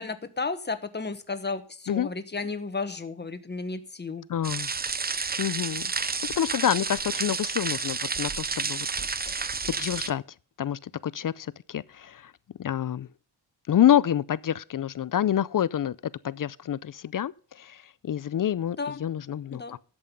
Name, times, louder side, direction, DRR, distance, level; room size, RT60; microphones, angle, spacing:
voice 1, 0.0-4.2 18.8-19.0 19.5-19.8, left 4 dB, 25° left, 1.3 m, -33 dB
voice 2, 4.3-4.7 5.4-8.9 9.3-10.2 10.6-12.3 12.6-13.1 13.7-16.0 16.2-19.8, left 10 dB, 50° left, 0.5 m, -27 dB
sound 1, 4.4-10.1, right 4 dB, 25° right, 0.6 m, -30 dB
11.0 x 8.0 x 5.3 m
wide cardioid pair, 115°, 42 cm